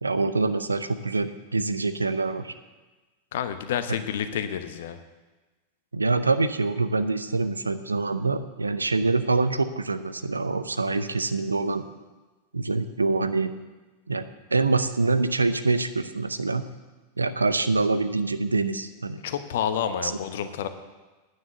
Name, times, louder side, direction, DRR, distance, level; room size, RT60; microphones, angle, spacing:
voice 1, 0.0-2.5 5.9-11.8 12.5-13.5 14.1-16.6 17.2-19.2 20.0-20.1, right 3 dB, 80° right, 11 dB, 0.6 m, -25 dB
voice 2, 3.3-5.0 19.2-20.7, left 9 dB, 55° left, 10 dB, 0.9 m, -29 dB
9.7 x 9.7 x 6.8 m, 1.2 s
figure-of-eight pair, 90°, 0 cm